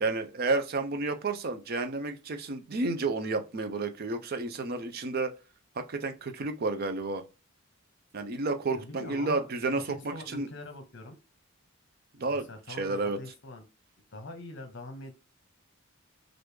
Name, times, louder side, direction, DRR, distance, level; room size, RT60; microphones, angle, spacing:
voice 1, 0.0-5.3 5.8-7.2 8.1-10.5 12.2-13.2, right 3 dB, 45° right, 0.5 m, -31 dB
voice 2, 8.7-11.2 12.3-13.6 14.1-15.1, left 1 dB, 60° left, 0.9 m, -43 dB
3.2 x 2.5 x 3.3 m
head